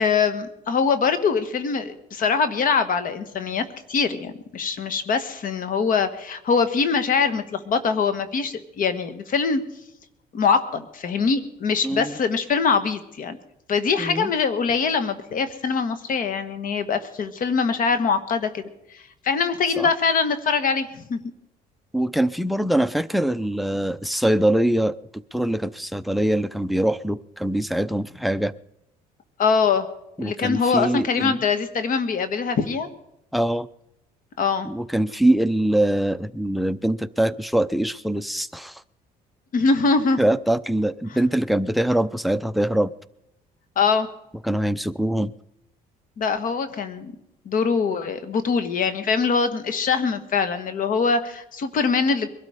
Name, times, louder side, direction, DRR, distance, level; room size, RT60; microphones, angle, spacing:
voice 1, 0.0-9.6 10.3-13.4 13.7-18.6 18.9-21.2 29.4-29.9 30.2-32.9 34.4-34.7 39.5-40.2 43.8-44.1 46.2-47.1 47.4-52.3, left 5 dB, 55° left, 11 dB, 1.4 m, -23 dB
voice 2, 11.8-12.1 14.0-14.3 19.8-19.9 21.9-24.9 25.3-28.5 30.2-31.4 33.3-33.7 34.6-38.8 40.2-42.9 44.4-45.3, right 1 dB, ahead, 18 dB, 0.5 m, -23 dB
22.0 x 12.5 x 5.0 m, 0.86 s
cardioid pair, 110°, 17 cm